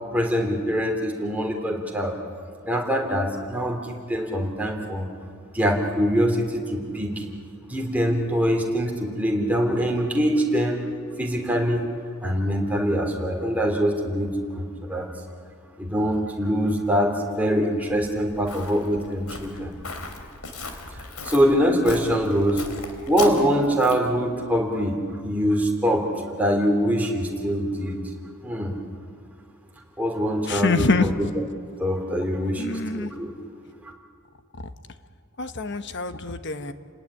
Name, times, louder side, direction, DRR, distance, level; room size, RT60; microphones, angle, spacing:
voice 1, 0.1-2.1 2.7-5.1 5.5-7.2 7.7-10.9 11.2-11.9 12.2-15.1 15.8-19.7 21.2-22.6 23.1-26.1 26.3-28.0 28.4-28.7 30.0-31.1 31.8-33.3, equal, 5° right, 1 dB, 3.4 m, -24 dB
Walk footsteps, 17.9-24.2, left 3 dB, 90° left, 3.2 m, -38 dB
voice 2, 30.5-31.1 32.6-33.1 35.4-36.7, left 3 dB, 55° left, 9 dB, 1.2 m, -25 dB
30.0 x 19.0 x 9.9 m, 2.2 s
head